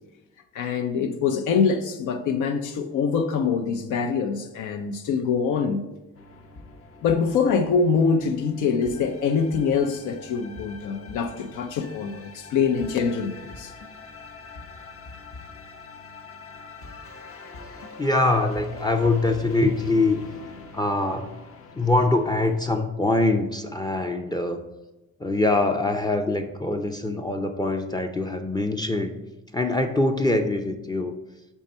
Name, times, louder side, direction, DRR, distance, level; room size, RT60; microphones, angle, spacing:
voice 1, 0.5-5.8 7.0-13.7, left 5 dB, 80° left, 6 dB, 0.6 m, -24 dB
sound 1, 6.1-22.6, left 3 dB, 50° left, 0.7 m, -44 dB
voice 2, 17.6-20.2 20.7-21.3 21.7-24.6 25.2-29.2 29.5-31.1, left 2 dB, 15° left, 6 dB, 0.4 m, -23 dB
5.4 x 3.5 x 5.3 m, 1.1 s
cardioid pair, 90°, 30 cm